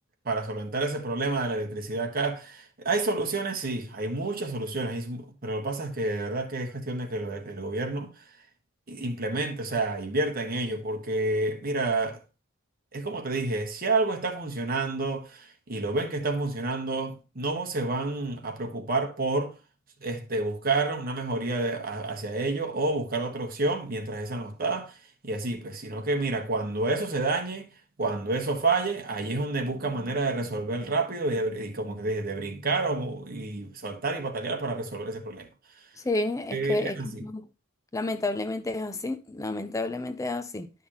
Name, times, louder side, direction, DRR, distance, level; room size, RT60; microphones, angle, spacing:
voice 1, 0.2-8.2 8.9-12.2 12.9-19.5 20.0-25.0 25.2-27.7 28.0-35.5 36.5-37.2, right 2 dB, 45° right, 1.5 m, -29 dB
voice 2, 36.0-37.4 37.9-40.7, left 2 dB, 15° left, 0.4 m, -31 dB
11.5 x 5.5 x 3.0 m
head